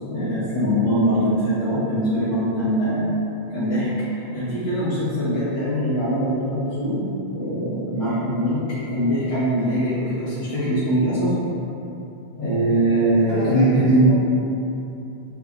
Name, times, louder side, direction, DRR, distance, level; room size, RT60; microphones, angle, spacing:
voice 1, 0.1-3.1 3.5-3.9 4.1-7.0 7.3-11.3 12.4-14.1, right 1 dB, 80° left, -14 dB, 1.5 m, -22 dB
voice 2, 13.3-14.2, equal, 25° left, -14 dB, 0.9 m, -31 dB
7.3 x 2.9 x 2.3 m, 2.9 s
omnidirectional pair, 1.1 m